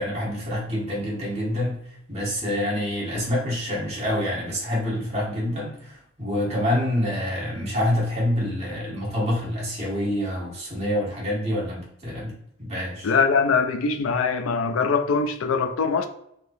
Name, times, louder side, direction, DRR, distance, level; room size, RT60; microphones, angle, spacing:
voice 1, 0.0-1.8 2.1-12.3 12.6-13.1, left 1 dB, 35° right, -6 dB, 1.3 m, -27 dB
voice 2, 13.0-16.1, left 5 dB, 85° left, 7 dB, 0.4 m, -22 dB
3.3 x 2.8 x 2.6 m, 0.74 s
head